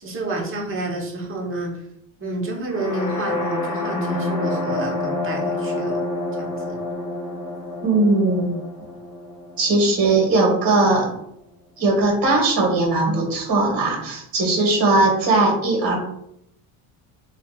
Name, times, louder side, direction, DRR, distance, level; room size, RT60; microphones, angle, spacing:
voice 1, 0.0-1.7 2.2-6.0 6.4-6.7, right 2 dB, 30° right, -1 dB, 1.0 m, -29 dB
sound 1, 2.7-10.6, left 2 dB, 35° left, 1.1 m, -28 dB
voice 2, 7.8-8.5 9.6-11.1 11.8-16.0, right 2 dB, 50° right, 0 dB, 1.3 m, -19 dB
3.4 x 2.4 x 2.3 m, 0.73 s
supercardioid pair, 85°, 45 cm